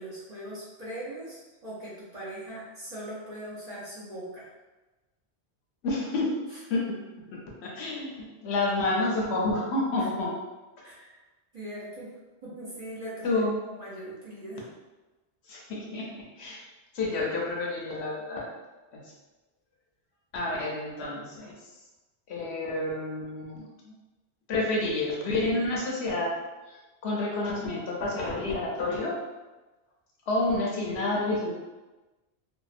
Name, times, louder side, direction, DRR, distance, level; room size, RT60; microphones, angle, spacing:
voice 1, 0.0-4.5 10.0-10.1 10.8-11.1 11.5-12.1 12.4-14.6, right 1 dB, 45° right, -8 dB, 0.6 m, -40 dB
voice 2, 5.8-6.3 6.7-7.0 7.6-10.3 13.2-13.5 15.5-16.6 16.9-18.5 18.9-19.1 20.3-21.5 22.3-23.9 24.5-26.3 26.7-29.1 30.3-31.5, left 2 dB, 75° left, -3 dB, 0.9 m, -29 dB
2.7 x 2.1 x 2.4 m, 1.2 s
omnidirectional pair, 1.1 m